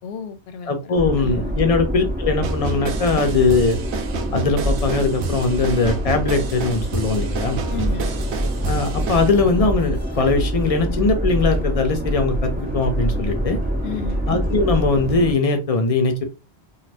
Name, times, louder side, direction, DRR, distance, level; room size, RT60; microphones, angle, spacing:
voice 1, 0.0-1.5 7.7-8.1 13.8-14.2, left 6 dB, 75° left, 0.8 m, -32 dB
voice 2, 0.7-3.8 4.3-7.6 8.7-13.6 14.3-16.2, left 3 dB, 45° left, 0.5 m, -20 dB
sound 1, 0.9-15.3, equal, 15° right, 0.3 m, -27 dB
sound 2, 2.4-9.3, right 5 dB, 85° right, 0.9 m, -30 dB
sound 3, 7.6-15.0, right 1 dB, 20° left, 0.9 m, -28 dB
2.5 x 2.4 x 3.3 m
omnidirectional pair, 1.1 m